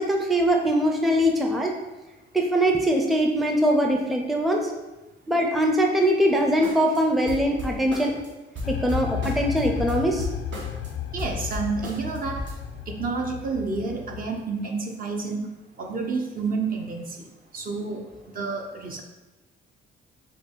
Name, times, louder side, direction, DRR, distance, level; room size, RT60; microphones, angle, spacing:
voice 1, 0.0-1.7 2.3-4.7 5.3-8.1 8.7-10.3, equal, ahead, 1 dB, 0.5 m, -22 dB
sound 1, 6.6-7.0 7.3-8.3 8.6-10.9 11.2-12.6, equal, 65° right, 1.3 m, -35 dB
sound 2, 8.6-14.4, left 9 dB, 90° left, 0.4 m, -33 dB
voice 2, 11.1-12.4 12.9-15.5 15.8-17.2 17.5-19.0, right 4 dB, 45° right, 2 dB, 0.8 m, -29 dB
5.0 x 2.3 x 4.5 m, 1.1 s
cardioid pair, 90°, 20 cm